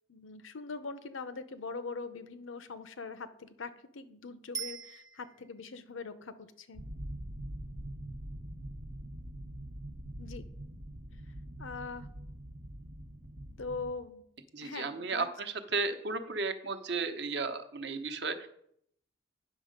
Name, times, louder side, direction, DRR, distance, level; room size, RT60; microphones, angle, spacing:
voice 1, 0.1-6.8 10.2-10.4 11.6-12.1 13.6-14.2 14.6-15.3, left 4 dB, 80° left, 12 dB, 0.8 m, -42 dB
Bicycle bell, 4.5-5.7 14.7-14.8, right 6 dB, 20° right, 0.5 m, -42 dB
sound 1, 6.7-13.9, right 1 dB, 90° right, 1.1 m, -44 dB
voice 2, 14.5-18.5, right 4 dB, 55° right, 8 dB, 0.9 m, -34 dB
9.2 x 6.4 x 5.2 m, 0.70 s
head